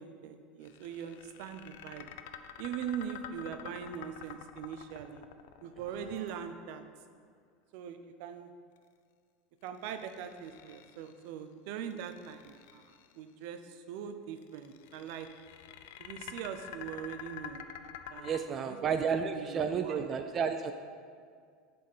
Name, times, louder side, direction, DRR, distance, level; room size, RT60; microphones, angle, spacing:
voice 1, 0.0-2.1 2.6-5.3 5.6-6.8 7.7-8.5 9.6-15.4 16.0-17.6 18.1-18.6 19.1-20.1, right 8 dB, 65° right, 9 dB, 0.6 m, -41 dB
sound 1, 0.6-6.8 9.7-11.2 11.8-13.1 14.4-18.4, left 9 dB, 80° left, 0.5 m, -48 dB
voice 2, 18.2-20.7, right 6 dB, 30° right, 6 dB, 0.4 m, -32 dB
10.5 x 4.3 x 5.5 m, 2.1 s
supercardioid pair, 150°, 0 cm